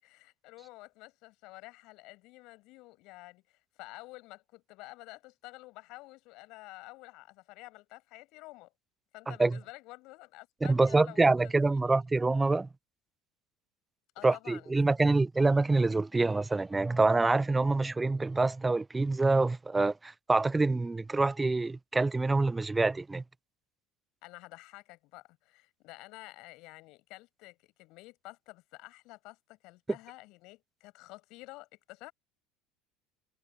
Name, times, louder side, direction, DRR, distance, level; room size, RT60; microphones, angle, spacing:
voice 1, 0.0-8.7 9.1-11.9 14.1-15.1 24.2-32.1, left 22 dB, 55° left, 7.6 m, -50 dB
voice 2, 9.3-9.6 10.6-12.7 14.2-23.2, right 3 dB, 15° right, 0.5 m, -26 dB
figure-of-eight pair, 65°, 0 cm